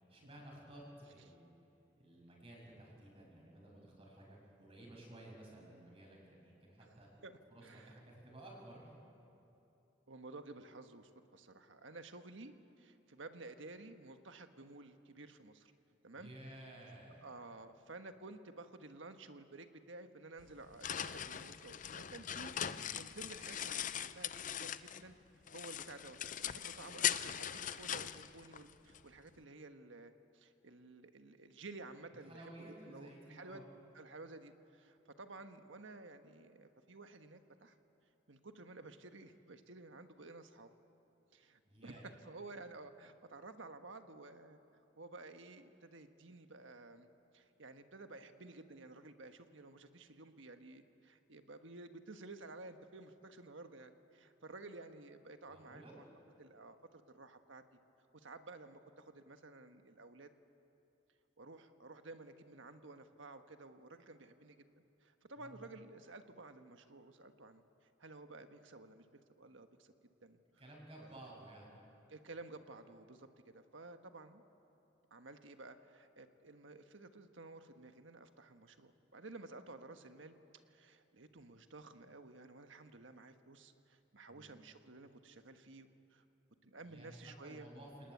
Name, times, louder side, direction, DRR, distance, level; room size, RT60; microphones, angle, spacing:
voice 1, 0.1-1.5 2.0-7.1 7.5-9.0 16.1-17.4 22.5-22.9 32.3-33.6 41.6-42.1 55.5-56.0 65.4-65.6 70.6-71.8 84.3-84.6 86.8-88.1, right 1 dB, 30° right, -2 dB, 6.9 m, -55 dB
voice 2, 7.6-8.0 10.1-15.7 16.0-16.3 17.2-25.1 25.5-32.5 32.9-33.6 33.9-37.8 38.3-40.7 41.3-44.6 45.0-47.1 47.3-56.0 56.4-57.6 58.1-60.3 61.4-64.6 65.0-67.6 68.0-69.1 69.4-69.9 70.2-70.4 71.0-71.4 72.1-74.4 75.1-80.4 80.7-86.2 86.6-87.7, right 2 dB, 75° right, 8 dB, 1.4 m, -53 dB
sound 1, 20.4-25.1 25.5-29.0, left 10 dB, 40° left, 0.5 m, -40 dB
29.0 x 19.5 x 9.4 m, 2.8 s
head